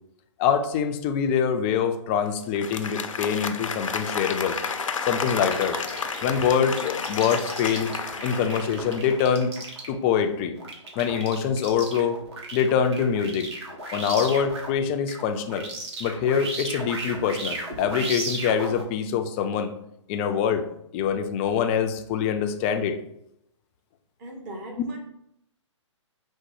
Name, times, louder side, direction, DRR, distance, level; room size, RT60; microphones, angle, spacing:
voice 1, 0.4-4.6 5.0-5.8 6.2-7.9 8.2-9.5 9.9-10.6 11.0-12.2 12.5-13.5 13.9-15.7 16.0-19.7 20.1-20.7 20.9-23.0, left 7 dB, 25° left, 7 dB, 0.4 m, -24 dB
Applause, 2.4-9.4, left 5 dB, 85° left, 0.5 m, -32 dB
sound 1, 5.2-14.8 15.1-18.8, right 2 dB, 55° right, 1.5 m, -36 dB
voice 2, 24.2-25.0, right 1 dB, 35° right, 0 dB, 1.1 m, -39 dB
5.0 x 2.1 x 4.6 m, 0.77 s
hypercardioid pair, 135°, 16 cm